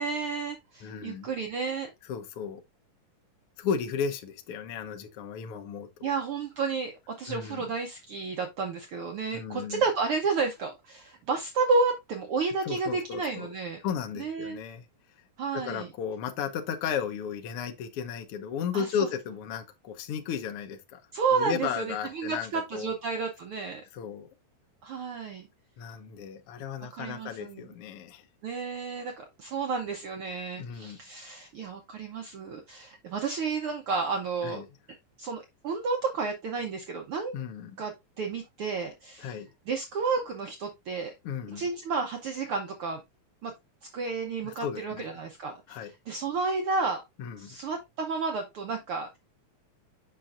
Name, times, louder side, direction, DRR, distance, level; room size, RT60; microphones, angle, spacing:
voice 1, 0.0-1.9 6.0-13.8 14.2-14.6 15.4-15.9 18.7-19.1 21.1-23.8 24.8-25.5 27.0-27.7 28.4-34.6 35.2-37.3 37.8-39.4 39.7-41.1 41.5-43.0 43.4-43.5 43.9-45.8 46.1-47.0 47.4-49.2, right 4 dB, 85° right, 1.2 m, -31 dB
voice 2, 0.8-1.3 2.1-2.6 3.6-6.1 7.3-7.7 9.3-9.8 12.6-13.5 13.8-14.8 15.5-21.0 21.3-22.9 23.9-24.3 25.8-28.3 30.6-31.0 34.4-34.7 37.3-37.8 39.2-39.5 41.2-41.6 44.4-45.1 45.7-45.9 47.2-47.6, left 7 dB, 80° left, 1.3 m, -34 dB
7.4 x 5.8 x 2.5 m
omnidirectional pair, 3.7 m